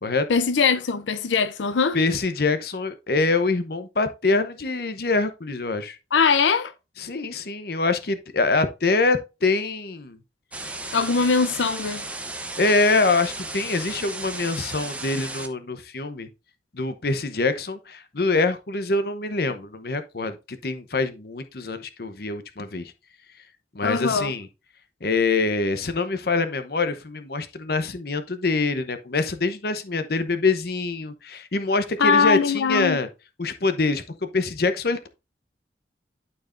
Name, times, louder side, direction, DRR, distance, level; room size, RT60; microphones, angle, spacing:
voice 1, 0.3-2.0 6.1-6.7 10.9-12.0 23.8-24.3 32.0-33.0, left 5 dB, 90° left, 0.6 m, -21 dB
voice 2, 1.9-6.0 7.0-10.2 12.6-16.3 16.7-22.9 23.7-24.5 25.0-33.1 33.4-35.1, left 3 dB, 55° left, 0.8 m, -25 dB
sound 1, 10.5-15.5, right 2 dB, 5° right, 0.8 m, -34 dB
12.0 x 4.6 x 2.5 m
head